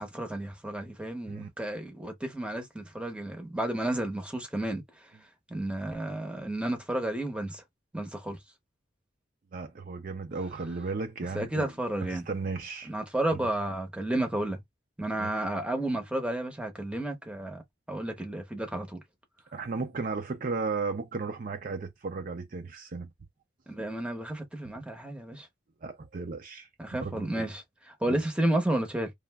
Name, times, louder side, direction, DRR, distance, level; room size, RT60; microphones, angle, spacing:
voice 1, 0.0-4.8 5.5-7.6 7.9-8.4 11.3-12.3 12.8-14.6 15.0-17.6 17.9-19.0 23.7-25.5 26.8-29.1, right 1 dB, 5° right, 0.8 m, -32 dB
voice 2, 9.5-11.7 12.0-12.9 13.3-13.5 15.2-15.3 19.5-23.1 25.8-26.7 27.0-27.5 28.1-28.2, right 4 dB, 50° right, 0.5 m, -35 dB
3.2 x 2.4 x 2.3 m
head